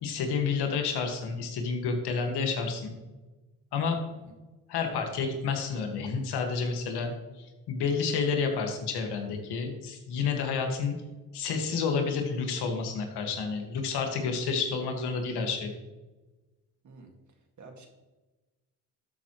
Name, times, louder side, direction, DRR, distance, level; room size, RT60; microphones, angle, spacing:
voice 1, 0.0-3.0 3.7-4.0 4.7-7.1 7.4-10.9 11.3-15.7, left 5 dB, 75° left, 4 dB, 1.9 m, -30 dB
voice 2, 4.2-4.4 16.8-17.1 17.6-17.9, right 3 dB, 45° right, 3 dB, 2.1 m, -49 dB
12.5 x 7.6 x 3.1 m, 1.1 s
cardioid pair, 80°, 40 cm